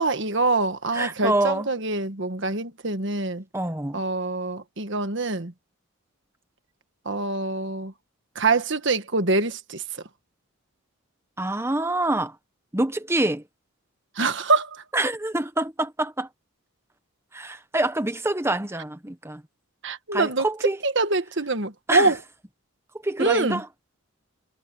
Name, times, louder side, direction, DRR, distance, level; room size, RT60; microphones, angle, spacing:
voice 1, 0.0-3.4 3.9-5.5 7.0-7.9 8.3-9.8 14.2-14.8 19.8-20.5 20.8-22.2 23.2-23.6, right 3 dB, 55° right, 1.5 m, -24 dB
voice 2, 0.9-1.7 3.5-4.0 11.4-12.3 12.7-13.4 14.9-16.3 17.3-19.4 20.1-20.8 21.9-22.1 23.0-23.7, right 2 dB, 10° right, 1.1 m, -26 dB
head